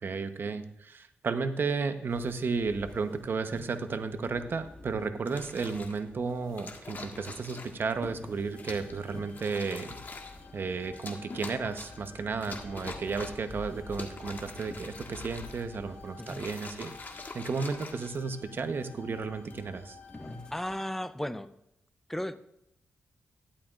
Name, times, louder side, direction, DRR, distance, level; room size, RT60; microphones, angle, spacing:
voice 1, 0.0-10.0 10.5-20.0, right 4 dB, 55° right, 9 dB, 0.9 m, -33 dB
sound 1, 2.1-20.8, left 2 dB, 20° left, 1.5 m, -50 dB
sound 2, 5.3-6.0 6.6-7.9 8.6-8.9 9.3-10.4 10.9-12.1 12.4-13.5 13.8-15.8 16.2-18.6 19.3-19.7, left 3 dB, 45° left, 1.6 m, -44 dB
sound 3, 8.5-20.8, left 5 dB, 75° left, 2.5 m, -53 dB
voice 2, 20.5-21.5 22.1-22.3, left 1 dB, 5° left, 12 dB, 0.6 m, -34 dB
13.0 x 11.0 x 2.5 m, 0.82 s
cardioid pair, 75°, 4 cm